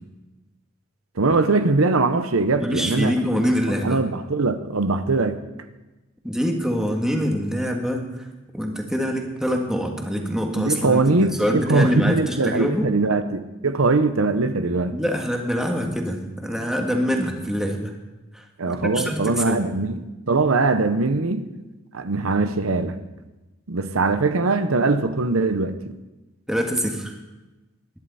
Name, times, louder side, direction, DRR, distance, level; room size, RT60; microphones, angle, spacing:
voice 1, 1.2-3.1 3.8-5.4 10.5-15.0 18.6-21.5 21.9-23.0 23.7-25.8, right 3 dB, 85° right, 10 dB, 0.9 m, -21 dB
voice 2, 2.6-4.0 6.2-8.3 8.5-12.9 14.9-17.9 18.3-19.8 26.5-27.1, equal, 5° right, 1 dB, 1.7 m, -25 dB
20.0 x 11.0 x 4.2 m, 1.1 s
head